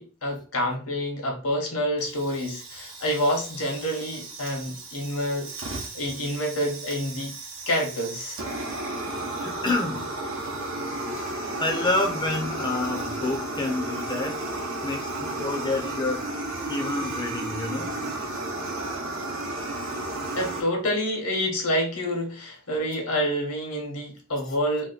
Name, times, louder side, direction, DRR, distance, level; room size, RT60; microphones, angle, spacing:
voice 1, 0.0-7.3 7.7-8.4 20.4-24.9, equal, 85° left, 1.1 m, -28 dB
Fire, 2.0-20.6, right 2 dB, 65° right, 0.7 m, -33 dB
voice 2, 9.4-10.1 11.2-11.3 11.6-14.5 14.8-16.3 16.6-18.0, left 2 dB, 20° left, 0.5 m, -28 dB
2.8 x 2.2 x 3.9 m
head